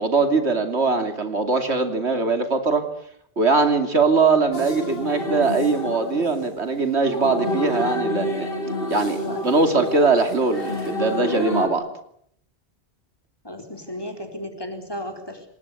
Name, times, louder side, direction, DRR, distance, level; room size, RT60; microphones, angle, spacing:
voice 1, 0.0-2.9 3.4-8.5 8.9-11.9, right 3 dB, 80° right, 7 dB, 3.1 m, -21 dB
sound 1, 4.5-11.7, left 1 dB, 60° left, 3.8 m, -29 dB
voice 2, 9.2-9.9 13.4-15.4, left 1 dB, 20° left, 5 dB, 4.2 m, -35 dB
27.0 x 20.0 x 8.4 m, 0.68 s
omnidirectional pair, 1.1 m